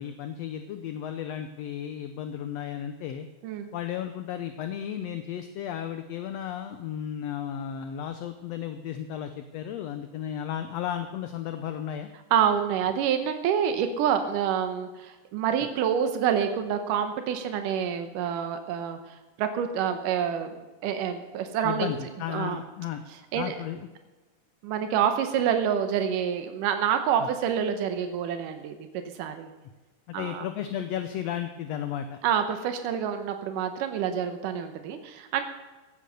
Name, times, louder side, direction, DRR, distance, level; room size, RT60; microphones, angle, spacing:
voice 1, 0.0-3.3 3.7-12.1 21.6-23.0 23.3-23.9 27.2-27.3 30.1-32.2, left 9 dB, 70° left, 8 dB, 1.7 m, -34 dB
voice 2, 12.3-19.0 19.4-21.9 22.3-22.6 23.3-23.5 24.6-28.8 29.2-29.5 30.1-30.5 32.2-35.4, right 8 dB, 90° right, 7 dB, 2.6 m, -27 dB
16.5 x 9.0 x 6.8 m, 1.2 s
omnidirectional pair, 3.7 m